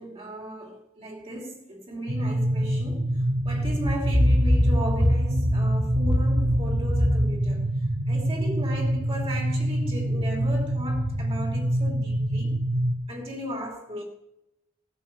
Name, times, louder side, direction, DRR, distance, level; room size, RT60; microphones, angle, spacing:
voice 1, 0.0-3.1 3.4-7.7 8.1-12.6 13.1-14.0, left 1 dB, 30° right, 2.8 m, -28 dB
sound 1, 2.1-12.9, right 1 dB, 75° right, 3.6 m, -26 dB
17.0 x 9.2 x 6.9 m
head